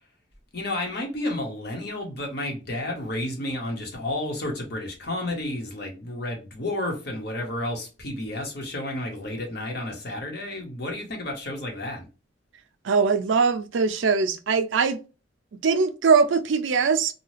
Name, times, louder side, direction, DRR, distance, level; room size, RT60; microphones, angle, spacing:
voice 1, 0.5-12.1, left 1 dB, 60° left, 1.0 m, -31 dB
voice 2, 12.8-15.0 15.6-17.1, right 5 dB, 85° right, 0.4 m, -21 dB
2.7 x 2.3 x 3.1 m
head